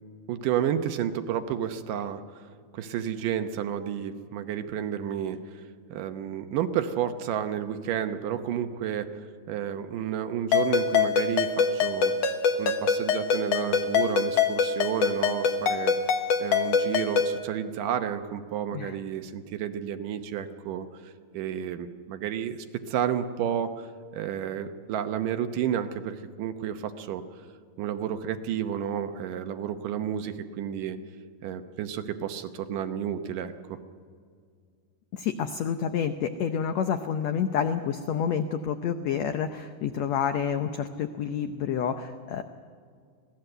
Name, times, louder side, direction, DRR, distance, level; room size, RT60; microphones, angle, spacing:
voice 1, 0.3-2.5 2.7-5.6 5.9-12.1 12.6-16.0 16.4-22.6 22.9-27.2 27.8-31.0 31.4-33.8, right 9 dB, 75° right, 8 dB, 2.4 m, -31 dB
Ringtone, 10.5-17.4, left 6 dB, 60° left, 1.9 m, -25 dB
voice 2, 35.1-42.4, left 8 dB, 85° left, 8 dB, 1.5 m, -29 dB
25.0 x 17.5 x 7.9 m, 2.1 s
omnidirectional pair, 4.2 m